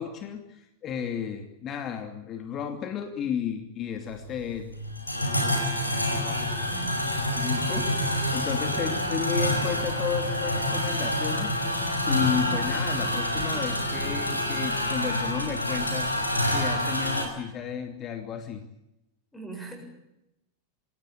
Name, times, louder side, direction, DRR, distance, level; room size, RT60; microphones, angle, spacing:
voice 1, 0.0-4.7 7.3-7.9 8.3-11.6 12.1-18.7, left 7 dB, 30° left, 6 dB, 2.6 m, -33 dB
sound 1, 4.1-17.2, left 1 dB, 85° left, 5.2 m, -27 dB
voice 2, 6.7-7.0 7.7-8.0 8.7-9.2 12.4-12.6 19.3-19.8, right 4 dB, 10° left, 3 dB, 7.7 m, -40 dB
26.5 x 17.5 x 8.6 m, 0.87 s
figure-of-eight pair, 90°, 0 cm